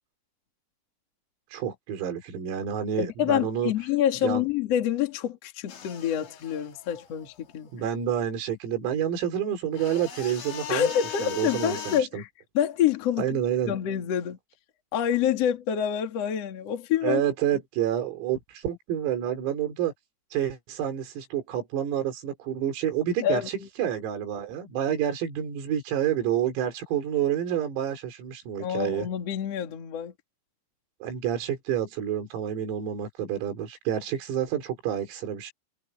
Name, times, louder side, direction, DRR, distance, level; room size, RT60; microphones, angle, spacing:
voice 1, 1.5-3.7 4.2-4.4 7.7-10.9 11.2-12.2 13.2-13.8 17.0-19.9 20.3-29.1 31.0-35.5, right 10 dB, 85° right, 6.9 m, -29 dB
voice 2, 3.0-7.7 10.7-12.3 12.5-13.3 13.7-14.4 14.9-17.2 23.2-23.7 28.6-30.1, left 9 dB, 45° left, 2.2 m, -27 dB
sound 1, 5.7-7.7 9.7-12.0, left 9 dB, 65° left, 5.5 m, -39 dB
omnidirectional pair, 5.9 m